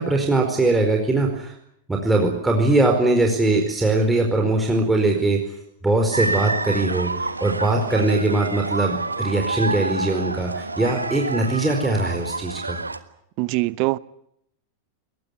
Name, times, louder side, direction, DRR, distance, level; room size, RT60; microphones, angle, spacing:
voice 1, 0.0-1.5 1.9-5.4 5.8-12.8, right 2 dB, 10° right, 1 dB, 4.7 m, -21 dB
sound 1, 6.1-13.0, right 3 dB, 80° right, 1.4 m, -28 dB
voice 2, 13.4-14.0, right 22 dB, 45° right, 20 dB, 0.9 m, -22 dB
22.5 x 20.5 x 9.7 m, 0.75 s
figure-of-eight pair, 90°, 0 cm